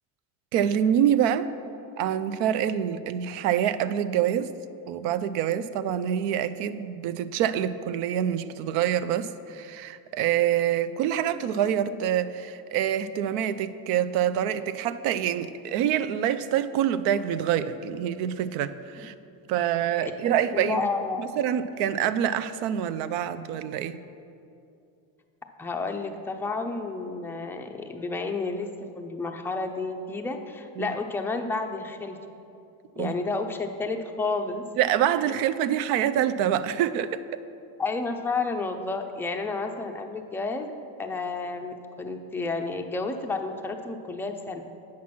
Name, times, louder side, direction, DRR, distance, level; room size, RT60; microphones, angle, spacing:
voice 1, 0.5-1.5 2.0-4.5 4.9-19.1 19.5-20.8 21.2-24.0 30.8-30.9 33.0-33.1 34.8-37.4, right 10 dB, 75° right, 13 dB, 0.6 m, -26 dB
voice 2, 20.0-21.3 25.6-28.7 28.9-32.2 33.0-34.6 35.3-35.4 37.8-40.7 41.0-44.7, left 3 dB, 5° left, 4 dB, 0.3 m, -31 dB
8.5 x 6.0 x 5.9 m, 2.6 s
cardioid pair, 120°, 44 cm